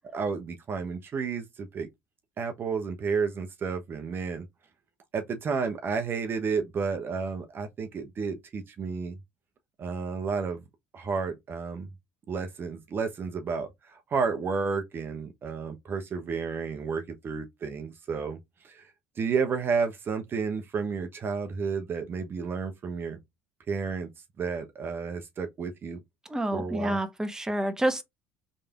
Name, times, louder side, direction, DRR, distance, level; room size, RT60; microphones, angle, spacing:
voice 1, 0.1-1.9 2.4-4.4 5.1-9.2 9.8-10.6 10.9-11.9 12.3-18.4 18.6-18.9 19.2-23.2 23.7-24.1 24.4-26.0 26.5-27.0, right 5 dB, 40° right, 0.9 m, -31 dB
voice 2, 26.3-28.0, right 1 dB, 10° right, 1.1 m, -28 dB
5.3 x 3.4 x 2.4 m
hypercardioid pair, 75°, 6 cm